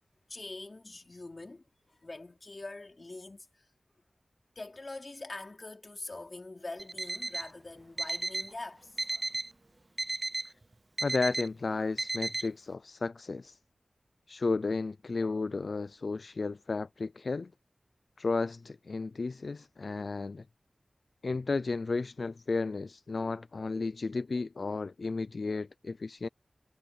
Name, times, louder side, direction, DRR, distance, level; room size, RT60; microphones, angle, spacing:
voice 1, 0.3-3.7 4.6-9.0, left 2 dB, 40° left, 3.9 m, -44 dB
Alarm, 6.8-7.5 8.0-8.5 9.0-9.5 10.0-10.5 11.0-11.5 12.0-12.5, right 2 dB, 35° right, 0.4 m, -34 dB
voice 2, 11.0-13.6 14.3-17.5 18.2-20.4 21.2-26.3, left 3 dB, 65° left, 0.4 m, -33 dB
wide cardioid pair, 95°, 0 cm